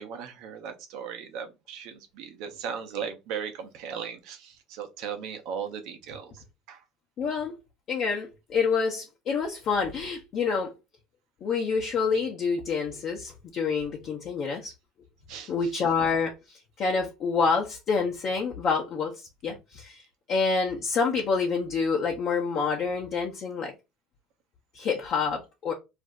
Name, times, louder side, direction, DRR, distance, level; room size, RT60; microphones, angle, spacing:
voice 1, 0.0-6.8 15.3-15.7, right 7 dB, 70° right, 0.7 m, -37 dB
voice 2, 7.2-7.5 7.9-10.7 11.4-14.7 15.5-20.0 20.3-23.7 24.7-25.7, left 5 dB, 50° left, 0.7 m, -27 dB
2.5 x 2.1 x 3.7 m
hypercardioid pair, 80°, 0 cm